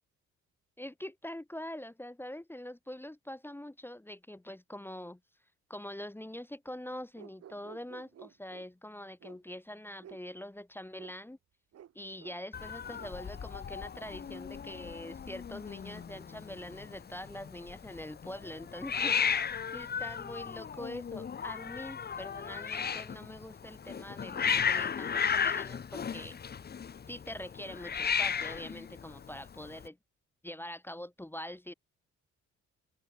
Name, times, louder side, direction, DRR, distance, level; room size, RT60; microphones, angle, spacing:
voice 1, 0.8-5.2 5.7-11.4 11.9-19.2 19.7-26.4 27.1-30.0 30.4-31.7, left 1 dB, 5° left, 0.8 m, -44 dB
sound 1, 7.1-8.7 9.2-9.4 10.0-10.2 11.0-11.1 11.7-11.9 12.2-12.4 12.9-13.1, right 10 dB, 55° right, 1.1 m, -52 dB
Hiss, 12.5-29.9, left 7 dB, 35° left, 0.8 m, -35 dB
open air
cardioid pair, 90°, 30 cm